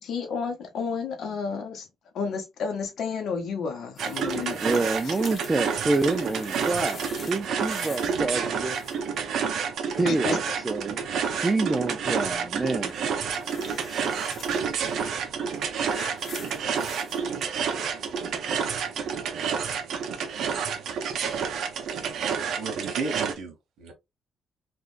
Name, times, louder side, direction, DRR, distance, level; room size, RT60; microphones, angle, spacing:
voice 1, 0.0-1.9 2.1-5.1 10.0-10.4, left 5 dB, 65° left, 0.9 m, -31 dB
sound 1, 4.0-8.2 8.5-9.2 12.9-14.6 15.4-17.2 18.0-18.1, left 3 dB, 40° left, 1.0 m, -44 dB
sound 2, 4.0-23.3, right 6 dB, 70° right, 0.7 m, -29 dB
voice 2, 4.6-8.8 10.0-11.0 11.4-13.0 13.7-14.1, right 3 dB, 20° right, 0.5 m, -27 dB
voice 3, 22.6-23.9, right 4 dB, 85° right, 1.2 m, -34 dB
3.5 x 2.5 x 2.5 m
cardioid pair, 140°, 0 cm